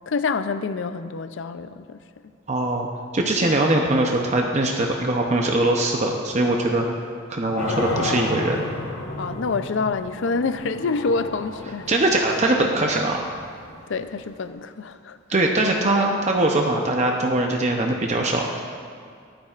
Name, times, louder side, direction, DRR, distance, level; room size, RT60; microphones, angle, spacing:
voice 1, 0.1-2.0 9.2-11.9 13.9-15.2, left 4 dB, 65° left, 11 dB, 0.5 m, -27 dB
voice 2, 2.5-2.9 3.1-6.9 7.3-8.6 11.9-13.3 15.3-18.6, right 2 dB, 35° right, 1 dB, 0.6 m, -21 dB
sound 1, 7.6-14.5, left 2 dB, 90° left, 1.1 m, -32 dB
14.5 x 11.5 x 2.4 m, 2.3 s
head